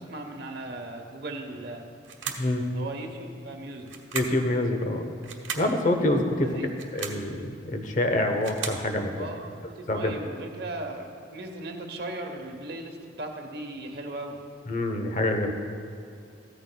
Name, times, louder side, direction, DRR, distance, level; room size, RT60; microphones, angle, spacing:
voice 1, 0.0-1.9 2.7-3.9 6.4-6.7 9.1-14.4, right 2 dB, 55° right, 3 dB, 1.0 m, -37 dB
sound 1, 2.0-2.6 3.9-4.5 5.2-5.7 6.7-7.3 8.1-8.9, right 7 dB, 90° right, 1.1 m, -36 dB
voice 2, 4.1-5.1 5.6-6.5 6.9-9.1 9.9-10.1 14.7-15.5, left 1 dB, 40° left, 5 dB, 0.9 m, -26 dB
15.0 x 13.5 x 2.3 m, 2.5 s
head